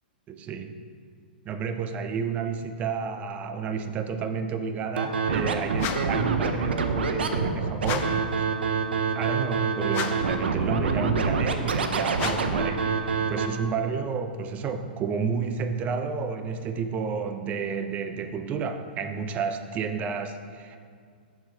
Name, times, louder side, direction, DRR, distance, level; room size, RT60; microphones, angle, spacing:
voice 1, 0.3-0.8 1.4-8.5 9.1-20.8, right 6 dB, 25° right, 7 dB, 0.5 m, -31 dB
Scratching (performance technique), 5.0-13.5, right 5 dB, 85° right, 0.6 m, -26 dB
sound 1, 5.7-6.2 7.8-8.3 9.9-10.4 12.1-12.6, left 7 dB, 35° left, 0.5 m, -33 dB
6.9 x 3.9 x 5.5 m, 2.2 s
hypercardioid pair, 130°, 6 cm